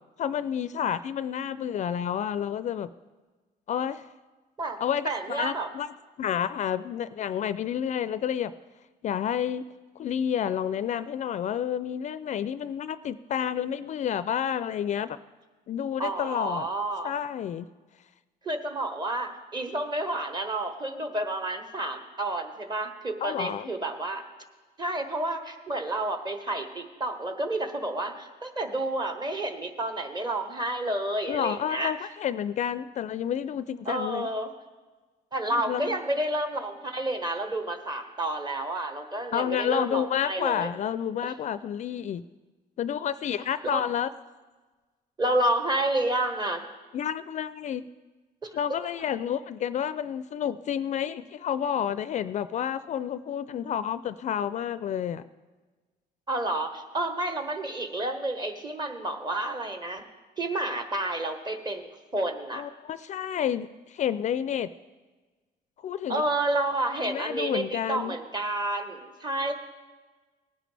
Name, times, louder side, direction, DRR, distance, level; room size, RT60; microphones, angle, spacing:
voice 1, 0.2-2.9 3.7-4.1 4.8-5.9 6.2-8.5 9.0-9.7 10.0-15.2 15.7-16.7 17.0-17.7 23.2-23.7 31.3-34.3 35.5-36.0 39.3-42.2 42.8-44.1 46.9-47.9 48.5-55.2 62.6-64.7 65.8-66.2 67.0-68.2, left 9 dB, 45° left, 14 dB, 0.4 m, -30 dB
voice 2, 5.0-5.7 16.0-17.1 18.4-24.2 24.8-31.9 33.8-34.5 35.3-40.7 43.6-43.8 45.2-46.6 48.4-48.5 56.3-60.0 60.4-62.6 66.1-69.5, right 1 dB, 25° right, 7 dB, 1.3 m, -30 dB
18.5 x 10.0 x 3.4 m, 1.3 s
cardioid pair, 110°, 17 cm